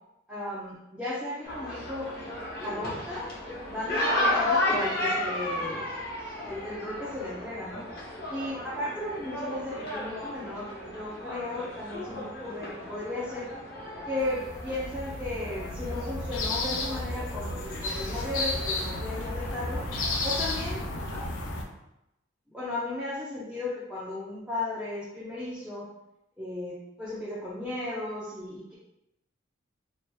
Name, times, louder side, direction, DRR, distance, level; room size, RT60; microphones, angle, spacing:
voice 1, 0.3-2.1 2.6-3.3 3.7-5.9 6.2-7.8 8.3-13.5 14.0-19.8 20.2-20.8 22.5-25.9 26.4-28.7, left 2 dB, 5° right, -9 dB, 0.6 m, -35 dB
sound 1, 1.4-21.2, left 1 dB, 50° left, 1.0 m, -34 dB
sound 2, 14.2-21.6, left 2 dB, 90° left, 0.6 m, -33 dB
4.9 x 2.8 x 2.3 m, 0.87 s
head